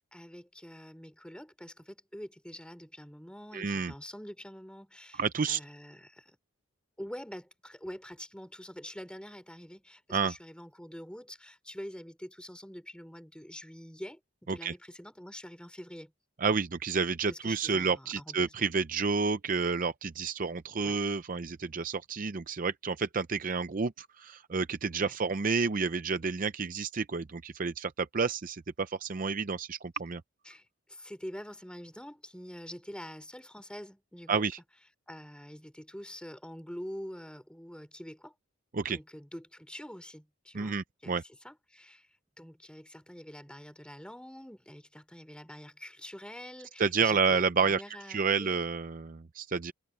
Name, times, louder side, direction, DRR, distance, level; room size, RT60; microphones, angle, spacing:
voice 1, 0.1-5.2 5.5-6.4 7.0-16.1 17.3-18.5 20.8-21.1 25.0-25.2 30.5-30.6 30.9-34.4 35.1-38.3 38.9-41.2 41.4-42.1 42.4-48.6, equal, 5° left, 3.9 m, -46 dB
voice 2, 3.5-3.9 5.2-5.6 10.1-10.3 14.5-14.7 16.4-30.2 34.3-34.6 38.7-39.0 40.5-41.2 46.8-47.8 48.1-49.7, right 5 dB, 40° right, 0.5 m, -30 dB
head